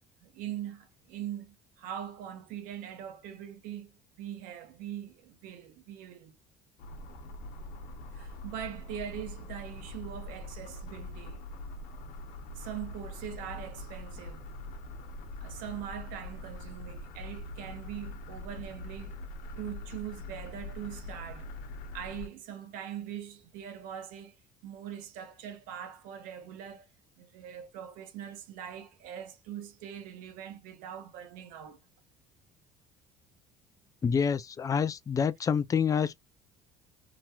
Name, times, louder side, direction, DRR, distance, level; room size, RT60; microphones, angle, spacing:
voice 1, 0.2-6.4 8.1-11.4 12.5-14.5 15.4-19.2 19.6-21.5 21.9-24.4 24.6-26.9 27.2-31.8, right 10 dB, 80° right, 1.0 m, -42 dB
sound 1, 6.8-22.3, left 1 dB, 80° left, 0.8 m, -43 dB
voice 2, 34.0-36.2, left 6 dB, 25° left, 0.4 m, -27 dB
3.0 x 2.7 x 2.3 m
cardioid pair, 110°, 14 cm